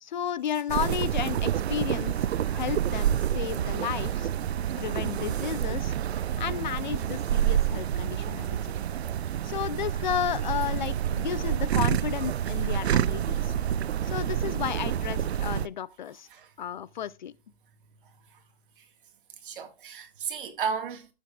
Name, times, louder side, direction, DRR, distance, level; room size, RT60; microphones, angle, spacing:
voice 1, 0.0-4.3 4.8-5.9 6.4-8.7 9.4-13.5 14.0-16.3 16.6-17.3, left 10 dB, 50° left, 0.5 m, -33 dB
voice 2, 0.5-0.9 6.3-6.7 9.4-9.5 16.3-16.5 18.3-18.4 18.8-18.9 19.4-21.1, right 6 dB, 55° right, 1.8 m, -35 dB
sound 1, 0.7-15.7, right 10 dB, 90° right, 0.6 m, -28 dB
14.5 x 7.3 x 2.4 m
hypercardioid pair, 160°, 31 cm